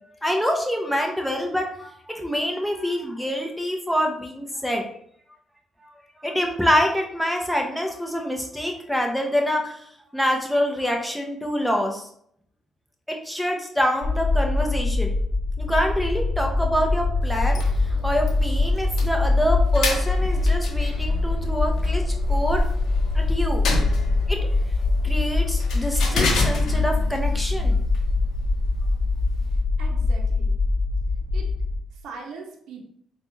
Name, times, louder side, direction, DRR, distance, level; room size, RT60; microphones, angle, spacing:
voice 1, 0.2-4.8 6.2-9.8 10.1-12.1 13.1-15.1 15.6-17.6 17.9-22.0 22.3-22.6 23.1-23.6 24.3-24.4 25.0-27.8, equal, ahead, 1 dB, 0.7 m, -26 dB
sound 1, 14.0-31.8, left 3 dB, 45° left, 0.7 m, -23 dB
sound 2, 15.6-26.7, right 3 dB, 20° left, 1.4 m, -41 dB
sound 3, 17.2-29.6, left 2 dB, 80° left, 0.6 m, -30 dB
voice 2, 29.8-30.6 31.3-31.5 32.0-32.8, right 4 dB, 80° right, 0 dB, 0.6 m, -40 dB
3.9 x 2.3 x 3.1 m, 0.68 s
cardioid pair, 90°, 0 cm